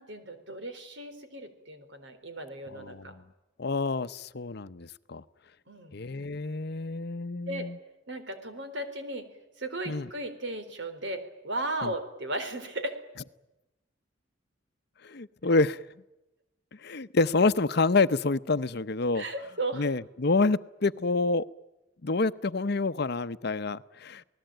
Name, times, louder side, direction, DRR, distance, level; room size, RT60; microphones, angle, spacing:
voice 1, 0.0-3.1 5.7-6.0 7.5-7.7 8.1-9.3 9.6-12.9 19.1-19.9, right 2 dB, 70° right, 8 dB, 4.0 m, -36 dB
voice 2, 2.7-3.1 3.6-5.2 5.9-7.8 9.9-10.1 11.8-11.9 15.0-15.8 16.8-19.2 19.7-21.4 22.0-24.2, left 3 dB, 60° left, 13 dB, 0.8 m, -27 dB
28.0 x 19.0 x 9.1 m, 0.98 s
head